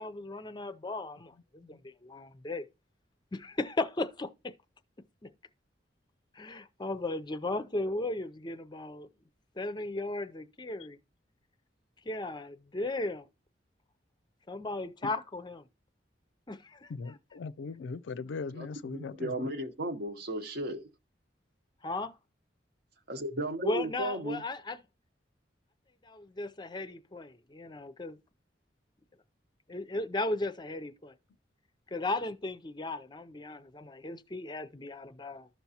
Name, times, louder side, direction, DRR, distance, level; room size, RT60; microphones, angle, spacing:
voice 1, 0.0-2.6 3.3-4.5 5.2-5.3 6.3-9.1 9.6-11.0 12.1-13.3 14.5-15.6 16.5-16.9 21.8-22.2 23.6-24.8 26.0-28.2 29.7-31.1 31.9-35.5, left 2 dB, 25° left, 0.5 m, -36 dB
voice 2, 16.9-19.5, left 4 dB, 85° left, 0.4 m, -39 dB
voice 3, 18.9-20.9 23.1-24.4, right 1 dB, 60° right, 0.9 m, -35 dB
13.5 x 5.8 x 2.8 m
head